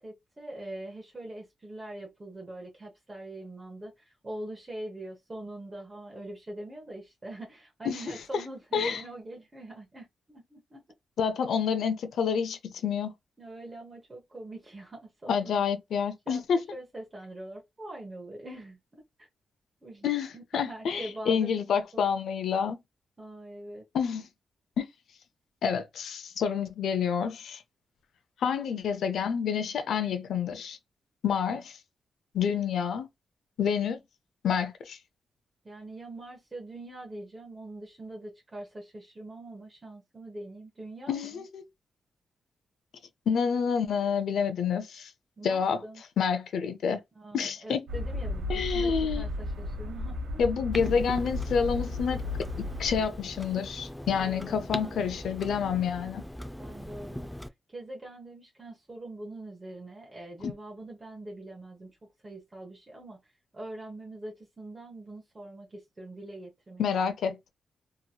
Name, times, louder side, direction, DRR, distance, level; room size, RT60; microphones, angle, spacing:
voice 1, 0.0-10.8 13.4-15.5 16.3-19.3 19.8-21.5 21.9-22.0 23.2-23.9 35.6-41.4 45.4-46.0 47.1-50.4 54.2-55.1 56.6-57.3 57.7-62.0 62.2-63.2 63.5-66.8, right 1 dB, 25° right, 0.9 m, -43 dB
voice 2, 11.2-13.1 15.3-16.6 20.0-22.8 23.9-24.3 24.8-24.9 25.6-27.6 28.4-30.8 31.2-31.8 32.3-33.1 33.6-34.0 34.4-35.0 41.1-41.6 43.3-45.1 45.4-45.8 46.2-47.0 47.3-47.8 48.5-49.2 50.4-56.2 60.4-60.5 66.8-67.5, left 7 dB, 80° left, 0.5 m, -28 dB
sound 1, 47.9-53.0, left 2 dB, 90° right, 0.9 m, -34 dB
Clock, 50.7-57.5, equal, 5° left, 0.3 m, -40 dB
2.9 x 2.8 x 2.2 m
cardioid pair, 120°, 0 cm